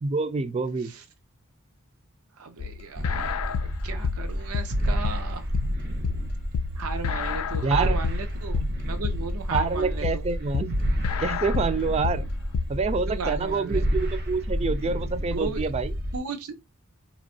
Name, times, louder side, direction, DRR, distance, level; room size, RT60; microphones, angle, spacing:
voice 1, 0.0-0.9 7.6-8.0 9.5-10.8 11.2-12.2 12.7-15.9, right 4 dB, 30° right, 0.3 m, -27 dB
voice 2, 2.4-3.5 3.8-5.5 6.8-10.2 13.1-13.9 15.3-15.6 16.1-16.6, right 5 dB, 85° right, 0.6 m, -35 dB
sound 1, 2.6-12.6, left 7 dB, 85° left, 0.3 m, -30 dB
sound 2, 2.9-16.2, equal, 50° right, 0.7 m, -29 dB
4.1 x 3.0 x 2.6 m
head